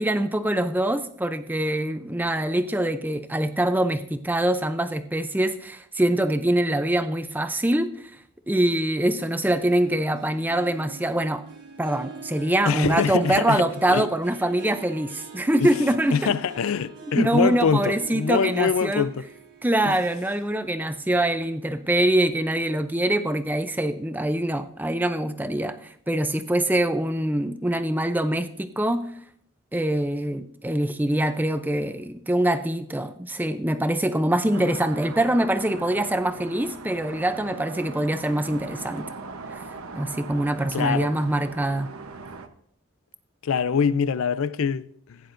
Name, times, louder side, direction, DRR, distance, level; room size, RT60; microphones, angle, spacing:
voice 1, 0.0-8.1 8.5-11.4 11.8-16.3 17.2-19.1 19.6-29.0 29.7-39.1 39.5-39.6 39.9-41.9, right 1 dB, 10° right, 0.5 m, -24 dB
Harp, 9.2-21.9 22.3-22.7 23.2-23.3, right 6 dB, 55° right, 1.5 m, -44 dB
voice 2, 12.7-14.1 15.6-15.8 16.1-19.2 19.9-20.0 40.7-41.1 43.4-45.2, left 6 dB, 75° left, 0.4 m, -24 dB
sound 1, 34.5-42.5, right 4 dB, 90° right, 0.9 m, -40 dB
16.0 x 9.8 x 2.6 m
head